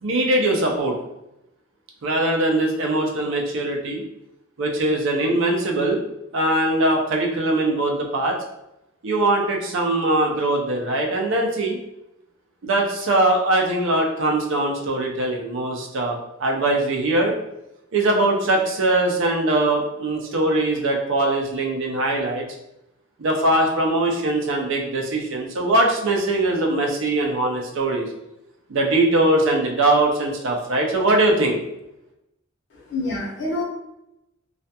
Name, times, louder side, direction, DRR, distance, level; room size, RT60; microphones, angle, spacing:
voice 1, 0.0-0.9 2.0-4.0 4.6-6.0 6.3-8.4 9.0-11.8 12.6-17.3 17.9-22.5 23.2-28.1 28.7-31.6, right 2 dB, 65° right, 1 dB, 0.5 m, -21 dB
voice 2, 32.7-33.6, left 2 dB, 60° left, -3 dB, 0.8 m, -27 dB
2.4 x 2.2 x 2.7 m, 0.88 s
head